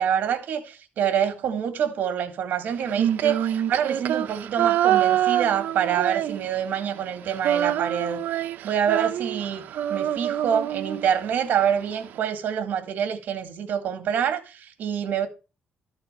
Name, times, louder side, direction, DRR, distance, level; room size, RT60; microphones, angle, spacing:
voice 1, 0.0-8.2 8.6-9.6 9.9-15.3, right 8 dB, 70° right, 1.8 m, -26 dB
Female singing, 2.8-6.8 7.0-11.3, right 11 dB, 90° right, 0.8 m, -25 dB
13.0 x 4.5 x 5.3 m
cardioid pair, 165°, 3 cm